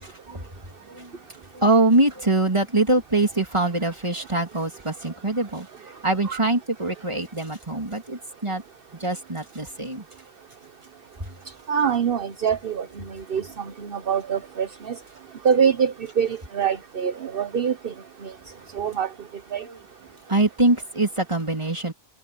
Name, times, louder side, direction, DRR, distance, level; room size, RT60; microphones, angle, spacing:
voice 1, 0.0-8.6 9.0-10.1 11.2-11.3 19.6-19.8 20.1-21.9, right 2 dB, 25° right, 3.3 m, -24 dB
voice 2, 11.7-12.9 13.3-13.4 13.9-14.9 15.4-17.9 18.8-19.1 19.5-19.6, right 7 dB, 60° right, 1.2 m, -24 dB
omnidirectional pair, 1.1 m